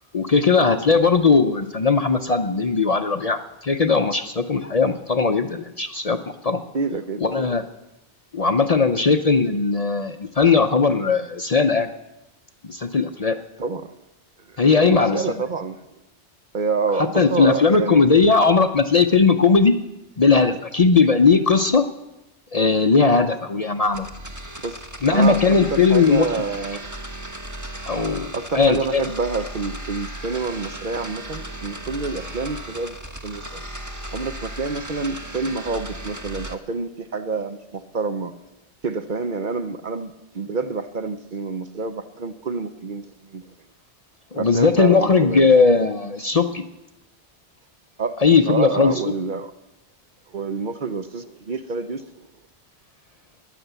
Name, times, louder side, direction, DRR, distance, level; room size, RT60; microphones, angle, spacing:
voice 1, 0.1-6.6 7.2-7.7 8.3-11.9 12.6-13.4 14.6-15.5 16.9-19.8 20.2-21.8 22.5-24.1 25.0-26.4 27.9-29.0 44.3-46.6 48.2-49.0, left 4 dB, 40° left, 8 dB, 0.6 m, -18 dB
voice 2, 6.7-7.5 13.6-13.9 14.5-15.8 16.5-18.1 24.6-24.8 25.1-25.4 25.7-26.8 28.3-33.0 33.2-33.6 34.1-38.3 38.8-43.4 44.3-45.5 48.0-48.1 48.5-49.5 50.3-52.1, right 4 dB, 50° right, 9 dB, 0.8 m, -28 dB
sound 1, 23.9-36.5, right 1 dB, 15° right, 1.1 m, -36 dB
13.5 x 10.5 x 8.1 m, 0.95 s
omnidirectional pair, 1.2 m